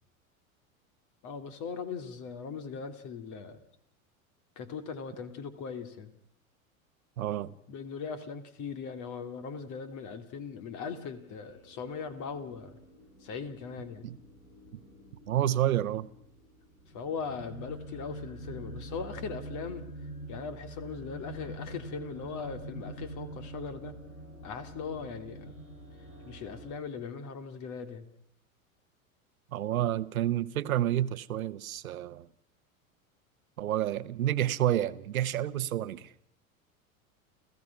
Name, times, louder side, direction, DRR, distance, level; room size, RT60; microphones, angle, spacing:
voice 1, 1.2-3.6 4.6-6.1 7.7-12.8 13.2-14.1 16.9-19.8 20.3-23.9 24.4-25.5 26.2-28.1, left 5 dB, 45° left, 2.7 m, -39 dB
voice 2, 7.2-7.5 14.0-14.2 15.3-16.1 29.5-32.3 33.6-36.1, right 12 dB, 75° right, 1.1 m, -29 dB
sound 1, 10.5-26.7, right 1 dB, 85° left, 6.0 m, -46 dB
30.0 x 15.5 x 6.0 m
hypercardioid pair, 85°, 42 cm